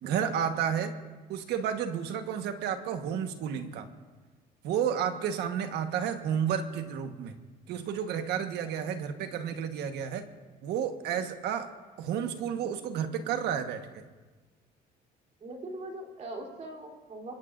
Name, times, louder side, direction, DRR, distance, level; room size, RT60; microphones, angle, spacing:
voice 1, 0.0-1.0 1.3-3.9 4.6-7.3 7.7-10.3 10.6-14.0, right 8 dB, 80° right, 7 dB, 1.4 m, -31 dB
voice 2, 15.4-17.4, right 2 dB, 45° right, 1 dB, 3.6 m, -41 dB
25.0 x 22.0 x 2.6 m, 1.3 s
cardioid pair, 110°, 17 cm